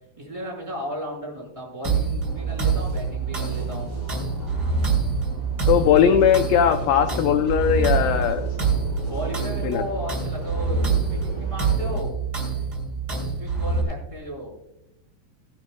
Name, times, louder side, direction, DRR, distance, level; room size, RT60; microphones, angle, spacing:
voice 1, 0.2-3.9 9.1-12.1 13.2-14.5, equal, 5° right, -3 dB, 4.6 m, -34 dB
sound 1, 1.8-13.8, right 5 dB, 25° right, 3.2 m, -26 dB
sound 2, 2.2-12.0, equal, 10° left, 3.2 m, -38 dB
voice 2, 5.7-8.5 9.6-9.8, left 9 dB, 80° left, 7 dB, 2.1 m, -19 dB
19.0 x 11.5 x 2.3 m, 0.86 s
omnidirectional pair, 4.8 m